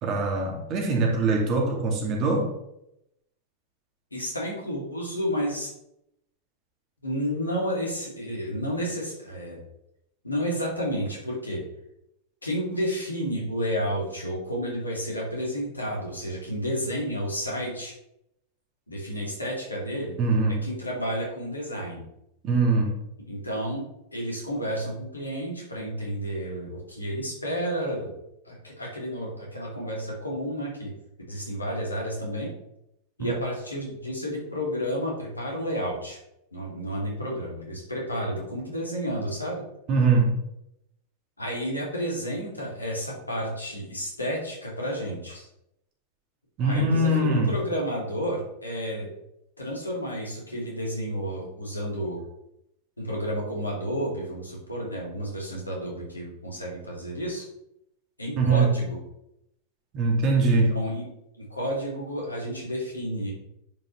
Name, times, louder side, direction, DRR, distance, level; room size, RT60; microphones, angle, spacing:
voice 1, 0.0-2.5 20.2-20.6 22.4-23.0 33.2-33.3 39.9-40.3 46.6-47.5 58.4-58.7 59.9-60.7, right 3 dB, 35° right, 0 dB, 2.2 m, -22 dB
voice 2, 4.1-5.7 7.0-9.6 10.2-11.6 12.4-17.9 18.9-20.2 20.6-22.1 23.3-23.8 24.1-28.2 28.4-30.9 31.3-32.5 33.2-36.2 36.5-39.6 41.4-45.5 46.6-49.1 49.6-52.2 53.0-57.5 58.2-59.0 60.5-61.0 61.4-63.3, equal, 80° left, -3 dB, 2.5 m, -31 dB
10.5 x 5.2 x 3.2 m, 0.82 s
figure-of-eight pair, 90°, 0 cm